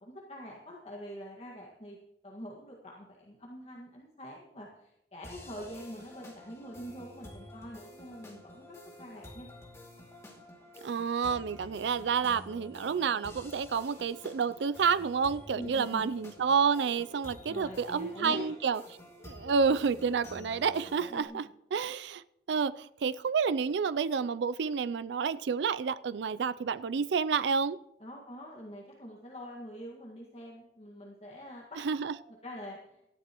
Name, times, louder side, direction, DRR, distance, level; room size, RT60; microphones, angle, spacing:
voice 1, 0.0-2.0 2.2-9.5 15.5-16.1 17.5-18.5 21.1-21.5 28.0-31.8 32.1-33.0, equal, 35° left, 1.8 m, -45 dB
sound 1, 5.2-21.2, left 1 dB, 15° left, 2.4 m, -50 dB
voice 2, 10.8-18.8 19.3-22.2 22.5-27.8 31.8-32.1, right 6 dB, 75° right, 0.4 m, -29 dB
19.0 x 13.5 x 3.0 m
head